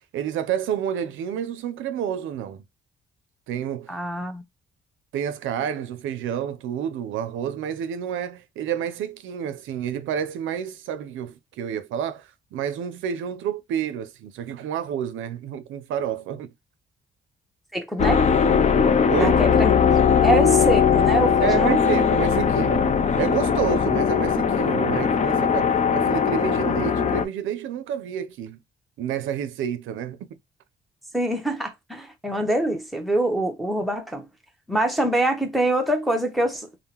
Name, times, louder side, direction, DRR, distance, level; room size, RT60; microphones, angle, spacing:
voice 1, 0.1-2.6 3.5-3.9 5.1-16.5 19.1-19.4 21.4-28.6 29.0-30.2, right 9 dB, 80° right, 0.5 m, -29 dB
voice 2, 3.9-4.4 17.7-18.3 19.2-19.8 20.2-21.8 31.1-34.2 34.7-36.8, right 1 dB, ahead, 0.8 m, -24 dB
sound 1, 18.0-27.3, left 7 dB, 35° left, 0.5 m, -20 dB
3.5 x 2.0 x 2.9 m
cardioid pair, 90°, 20 cm